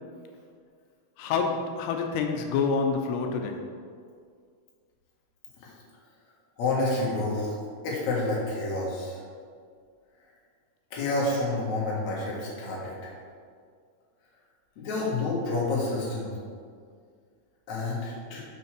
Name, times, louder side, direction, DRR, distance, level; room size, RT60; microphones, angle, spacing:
voice 1, 1.2-3.6, left 5 dB, 90° left, 3 dB, 2.7 m, -27 dB
voice 2, 6.6-7.6 7.8-9.2 10.9-13.1 14.8-16.3 17.7-18.4, left 2 dB, 55° left, -5 dB, 2.6 m, -29 dB
6.2 x 5.5 x 6.0 m, 2.1 s
omnidirectional pair, 4.5 m